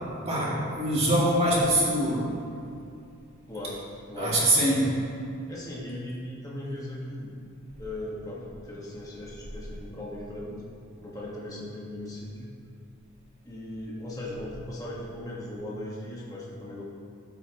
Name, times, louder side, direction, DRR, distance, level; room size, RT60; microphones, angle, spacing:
voice 1, 0.2-2.2 4.2-4.9, right 1 dB, 30° right, -6 dB, 2.5 m, -23 dB
voice 2, 3.5-4.4 5.5-7.3 7.8-10.5 11.0-12.5 13.4-16.8, left 1 dB, 15° left, -5 dB, 1.6 m, -38 dB
16.0 x 8.1 x 3.0 m, 2.5 s
head